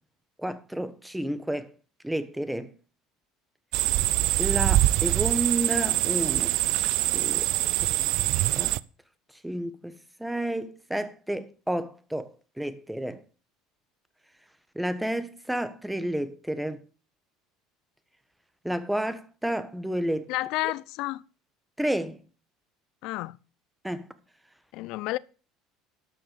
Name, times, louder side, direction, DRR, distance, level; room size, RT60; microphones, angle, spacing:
voice 1, 0.4-1.7 2.0-2.7 4.4-6.5 7.1-7.5 7.8-7.9 8.5-8.7 9.4-13.2 14.7-16.8 18.6-20.3 21.8-22.2 23.8-24.1, right 1 dB, 5° right, 1.4 m, -31 dB
sound 1, 3.7-8.8, right 17 dB, 65° right, 0.5 m, -24 dB
voice 2, 20.3-21.2 23.0-23.4 24.7-25.2, left 19 dB, 65° left, 0.6 m, -30 dB
12.5 x 6.0 x 7.1 m
hypercardioid pair, 75°, 0 cm